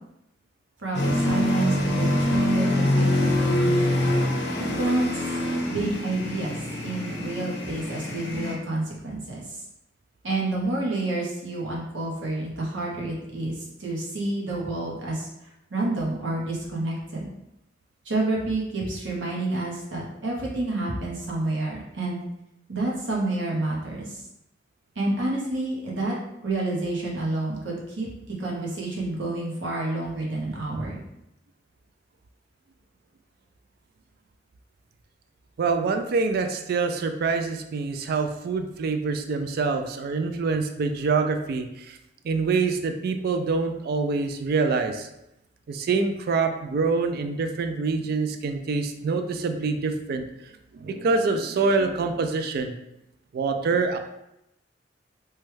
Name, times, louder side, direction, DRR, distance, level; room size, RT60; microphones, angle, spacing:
voice 1, 0.8-4.0 4.7-5.3 5.7-6.6 6.8-9.6 10.2-15.3 15.7-17.3 18.0-22.2 22.7-24.2 25.0-26.2 26.4-28.1 28.4-31.0, right 2 dB, 80° right, -3 dB, 0.9 m, -29 dB
sound 1, 0.9-8.6, left 1 dB, 65° left, 0.7 m, -25 dB
voice 2, 35.6-42.0 42.2-45.1 45.7-50.2 50.7-52.7 53.3-54.0, right 4 dB, 55° right, 7 dB, 0.3 m, -25 dB
3.1 x 2.2 x 3.1 m, 0.86 s
head